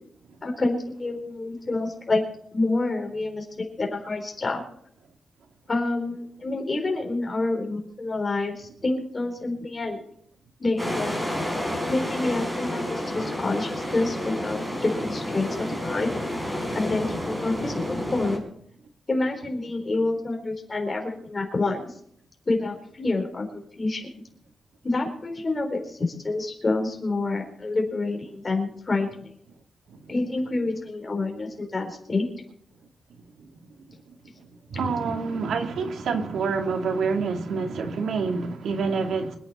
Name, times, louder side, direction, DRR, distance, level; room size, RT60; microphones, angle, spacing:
voice 1, 0.4-2.2 2.5-4.6 5.7-10.0 10.6-11.2 11.9-16.2 16.7-18.5 19.1-21.9 22.5-24.1 24.8-29.1 30.1-32.3, left 2 dB, 25° left, 2 dB, 4.1 m, -28 dB
sound 1, 10.8-18.4, left 1 dB, 10° right, 4.8 m, -30 dB
voice 2, 34.7-39.4, right 4 dB, 85° right, 4 dB, 2.3 m, -27 dB
26.0 x 9.1 x 4.3 m, 0.68 s
wide cardioid pair, 145°, 0 cm